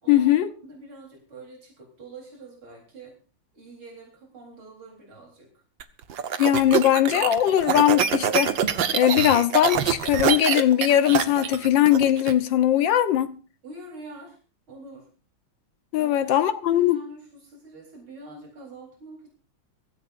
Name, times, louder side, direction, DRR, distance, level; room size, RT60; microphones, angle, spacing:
voice 1, 0.1-0.5 6.4-8.5 8.9-13.3 15.9-17.0, left 12 dB, 70° left, 1.7 m, -20 dB
voice 2, 0.6-3.2 3.5-5.6 13.6-14.4 14.7-15.1 15.9-16.4 16.7-19.3, right 1 dB, 85° right, 4.7 m, -44 dB
sound 1, 5.8-12.3, right 8 dB, 70° right, 1.8 m, -25 dB
23.5 x 14.5 x 2.6 m
omnidirectional pair, 2.2 m